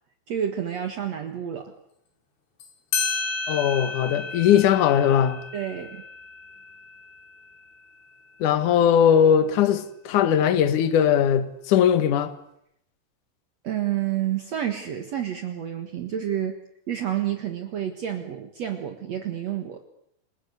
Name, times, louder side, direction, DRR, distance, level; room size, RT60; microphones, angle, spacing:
voice 1, 0.3-1.7 5.5-6.0 13.6-16.5 16.9-19.8, right 10 dB, 70° right, 1.6 m, -29 dB
sound 1, 2.6-2.7 2.9-8.0, left 4 dB, 85° left, 7.9 m, -33 dB
voice 2, 3.5-5.4 8.4-12.3, left 9 dB, 60° left, 2.4 m, -20 dB
29.0 x 19.5 x 8.2 m
omnidirectional pair, 5.5 m